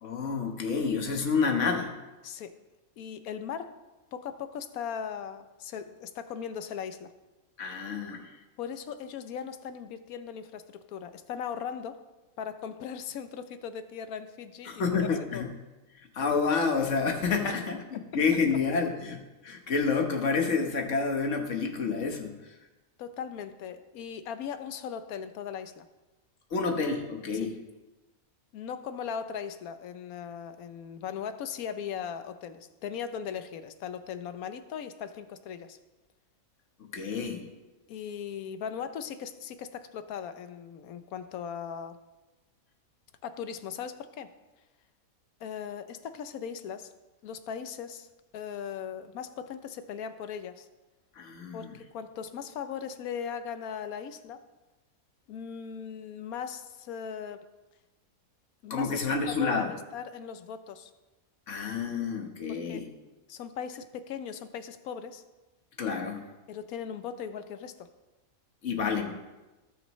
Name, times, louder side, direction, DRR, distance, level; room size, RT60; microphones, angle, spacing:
voice 1, 0.0-1.9 7.6-8.2 14.6-15.5 16.1-22.4 26.5-27.5 36.9-37.4 51.2-51.7 58.7-59.7 61.5-62.9 65.8-66.3 68.6-69.1, left 5 dB, 60° left, 3 dB, 1.5 m, -29 dB
voice 2, 2.2-2.6 3.0-3.8 4.1-7.1 8.6-12.0 12.4-15.5 17.4-17.7 17.9-18.0 23.0-25.9 27.3-27.5 28.5-35.8 37.9-42.0 43.2-44.3 45.4-46.9 47.2-48.1 48.3-50.7 51.5-54.4 55.3-57.5 58.6-60.9 62.5-62.9 63.3-65.2 66.5-67.9, left 7 dB, 90° left, 11 dB, 1.2 m, -38 dB
17.5 x 6.1 x 3.1 m, 1.1 s
omnidirectional pair, 1.5 m